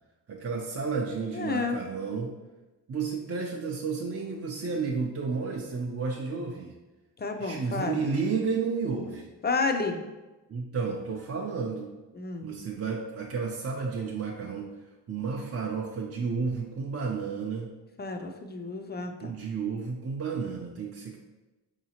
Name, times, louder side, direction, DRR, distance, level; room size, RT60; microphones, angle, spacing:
voice 1, 0.3-2.3 2.9-6.7 7.4-9.3 10.5-11.9 12.4-14.7 15.1-17.7 19.2-21.2, right 5 dB, 35° right, -1 dB, 0.5 m, -32 dB
voice 2, 1.3-1.8 7.2-8.1 9.4-10.0 12.1-12.5 18.0-19.3, left 4 dB, 25° left, 5 dB, 0.4 m, -31 dB
4.7 x 2.8 x 2.8 m, 1.1 s
cardioid pair, 75°, 43 cm